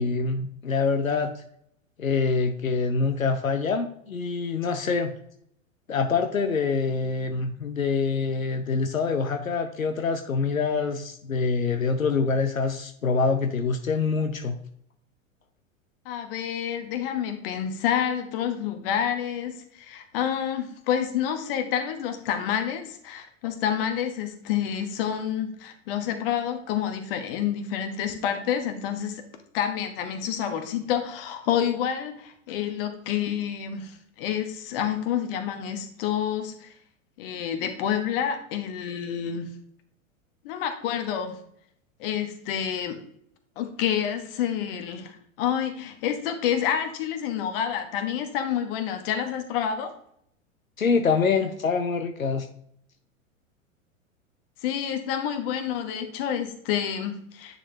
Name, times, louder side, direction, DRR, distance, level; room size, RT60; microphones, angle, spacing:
voice 1, 0.0-1.4 2.0-5.1 5.9-14.6 50.8-52.5, left 4 dB, 80° left, 7 dB, 0.7 m, -25 dB
voice 2, 16.0-29.2 29.5-36.7 37.2-39.5 40.4-41.4 42.0-43.0 43.6-49.9 54.6-57.6, left 9 dB, 45° left, 7 dB, 1.1 m, -28 dB
9.7 x 4.2 x 2.7 m, 0.68 s
figure-of-eight pair, 95°, 40 cm